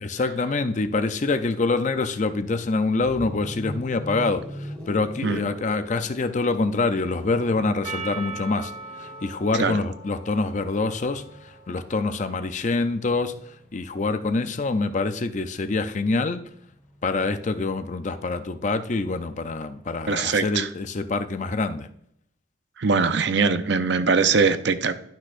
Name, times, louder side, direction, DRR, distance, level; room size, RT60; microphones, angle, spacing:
voice 1, 0.0-8.7 9.0-11.2 11.7-13.3 13.7-16.4 17.0-21.9, left 3 dB, 35° left, 10 dB, 0.4 m, -25 dB
sound 1, 2.9-14.8 16.1-19.7, equal, 5° left, 2.0 m, -43 dB
Percussion, 7.8-12.4, right 3 dB, 35° right, 1.6 m, -40 dB
voice 2, 20.1-20.7 22.8-24.9, right 4 dB, 55° right, 11 dB, 0.6 m, -22 dB
12.0 x 6.2 x 2.5 m, 0.71 s
head